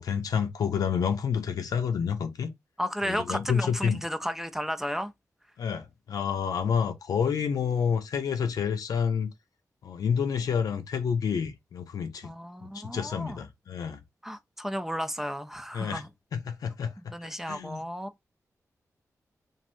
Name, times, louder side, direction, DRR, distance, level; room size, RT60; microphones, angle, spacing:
voice 1, 0.0-2.5 3.0-4.0 5.6-9.3 9.8-12.3 12.6-14.0 15.7-16.0 16.3-16.9 17.5-17.8, left 7 dB, 90° left, 0.6 m, -29 dB
voice 2, 2.8-5.1 12.2-13.4 14.2-16.1 17.0-18.3, equal, 5° right, 0.4 m, -33 dB
3.2 x 2.6 x 2.5 m
wide cardioid pair, 95°, 6 cm